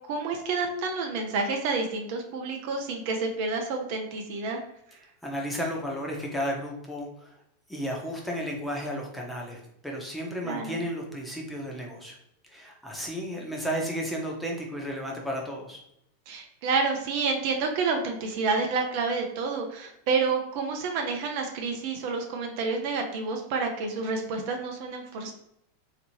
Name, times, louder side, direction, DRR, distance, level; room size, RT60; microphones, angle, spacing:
voice 1, 0.1-4.6 10.4-10.8 16.3-25.3, right 4 dB, 55° right, 3 dB, 0.6 m, -29 dB
voice 2, 5.2-7.4 7.7-12.2 12.5-15.8, equal, 5° left, -2 dB, 1.0 m, -33 dB
3.2 x 2.8 x 3.0 m, 0.77 s
hypercardioid pair, 95°, 0 cm